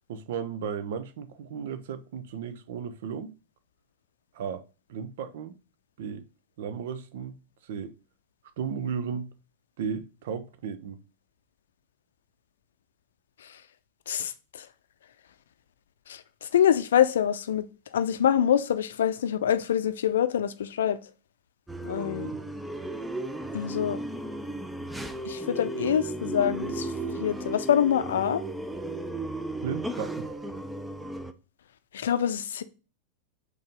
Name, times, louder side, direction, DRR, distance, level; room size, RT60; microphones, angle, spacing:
voice 1, 0.1-3.3 4.3-4.6 4.9-5.5 6.0-6.3 6.6-7.9 8.6-9.3 9.8-11.0 29.6-30.3, right 7 dB, 55° right, 0.7 m, -35 dB
voice 2, 16.5-17.7 17.9-21.0 21.8-22.3 23.5-24.0 25.2-26.9 27.2-28.4 31.9-32.6, left 9 dB, 60° left, 0.6 m, -25 dB
sound 1, 21.7-31.3, right 2 dB, 5° right, 0.6 m, -35 dB
5.3 x 4.0 x 5.3 m
figure-of-eight pair, 90°, 0 cm